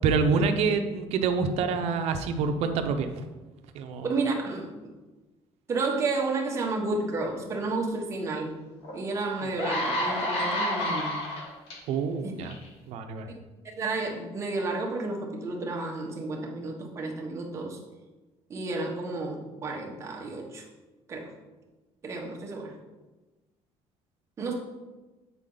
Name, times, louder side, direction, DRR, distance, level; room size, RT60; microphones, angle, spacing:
voice 1, 0.0-3.3 3.7-4.1 11.9-12.6 12.9-13.3, right 5 dB, 65° right, 7 dB, 0.6 m, -27 dB
voice 2, 4.0-4.9 5.7-8.5 8.9-11.2 12.2-12.3 13.6-17.8 18.5-20.6 21.1-21.3 22.0-22.7 24.4-24.5, right 3 dB, 25° right, -1 dB, 1.0 m, -31 dB
sound 1, 8.8-8.9 9.4-11.8 12.4-12.7, left 1 dB, 60° left, 1.5 m, -29 dB
8.1 x 4.1 x 3.8 m, 1.2 s
cardioid pair, 170°, 12 cm